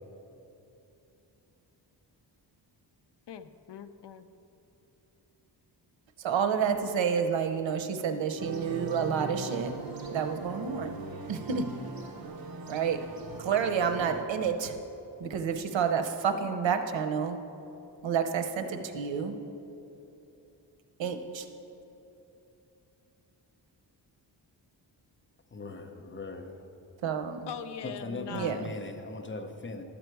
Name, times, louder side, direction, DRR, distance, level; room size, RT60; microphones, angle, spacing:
voice 1, 3.3-4.3 27.5-28.7, left 8 dB, 65° left, 11 dB, 0.6 m, -41 dB
voice 2, 6.2-9.7 10.1-11.0 11.3-11.6 12.7-13.0 13.4-14.7 15.2-17.4 18.0-19.3 21.0-21.5 27.0-27.4 28.3-28.6, right 7 dB, 85° right, 8 dB, 0.8 m, -29 dB
sound 1, 8.4-14.2, right 3 dB, 55° right, 0.9 m, -40 dB
voice 3, 25.5-26.7 27.8-29.8, left 3 dB, 25° left, 5 dB, 0.7 m, -39 dB
12.0 x 7.9 x 4.6 m, 2.9 s
wide cardioid pair, 135°, 44 cm